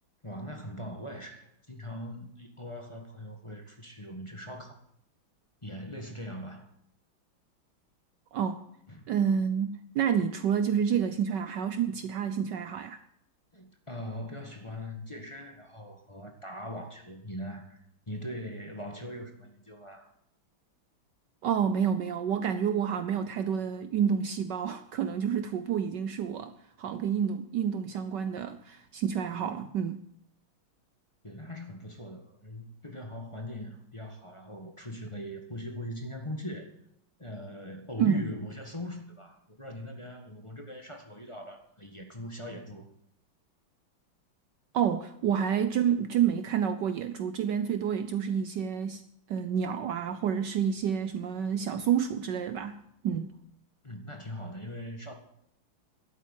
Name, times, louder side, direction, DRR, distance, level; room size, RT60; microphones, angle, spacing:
voice 1, 0.2-4.7 5.6-6.7 8.9-9.1 13.5-20.1 31.2-36.7 37.2-42.9 53.8-55.2, left 1 dB, 15° left, 1.6 m, -41 dB
voice 2, 8.3-8.6 9.1-13.0 21.4-30.0 38.0-38.2 44.7-49.0 49.3-53.3, right 8 dB, 70° right, 1.2 m, -29 dB
12.0 x 8.9 x 9.1 m
omnidirectional pair, 2.2 m